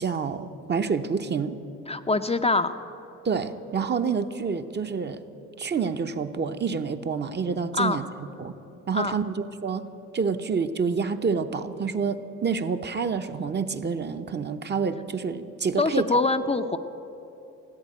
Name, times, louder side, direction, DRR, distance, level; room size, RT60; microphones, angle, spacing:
voice 1, 0.0-1.6 3.2-5.2 5.6-8.1 8.4-8.6 8.9-9.9 10.1-16.2, right 5 dB, 35° right, 8 dB, 0.8 m, -28 dB
voice 2, 1.9-2.7 7.8-8.0 8.9-9.2 15.8-16.8, left 3 dB, 20° left, 7 dB, 0.5 m, -24 dB
15.5 x 8.2 x 9.9 m, 3.0 s
cardioid pair, 90°, 30 cm